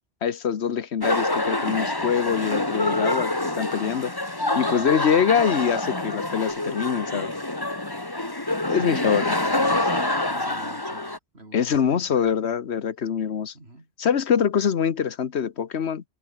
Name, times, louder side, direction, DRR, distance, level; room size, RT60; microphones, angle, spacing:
voice 1, 0.2-4.1 4.5-7.3 8.7-9.3 11.5-13.5 14.0-16.0, left 7 dB, 85° left, 1.4 m, -24 dB
sound 1, 1.0-11.2, left 2 dB, 20° left, 2.0 m, -26 dB
voice 2, 8.7-12.3 13.5-13.9, right 2 dB, 80° right, 5.7 m, -44 dB
omnidirectional pair, 1.1 m